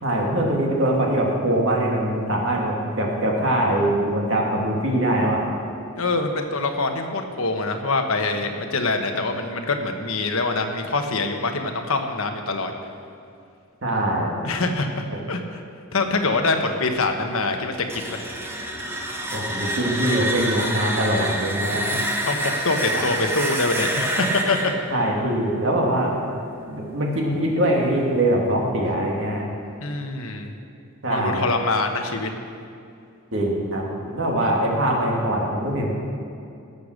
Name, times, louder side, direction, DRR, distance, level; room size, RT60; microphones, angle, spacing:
voice 1, 0.0-5.5 13.8-14.4 19.3-21.9 22.9-23.0 24.9-26.2 26.7-29.5 31.0-31.5 33.3-35.9, right 1 dB, 60° right, -2 dB, 2.4 m, -23 dB
voice 2, 6.0-12.7 14.4-14.9 15.3-15.6 15.9-18.2 18.8-18.9 21.7-24.7 29.8-30.5 31.1-32.3 34.4-34.5, left 3 dB, 85° left, 5 dB, 1.2 m, -25 dB
sound 1, 17.7-26.5, right 1 dB, 10° right, 1.0 m, -28 dB
16.0 x 6.9 x 6.6 m, 2.4 s
head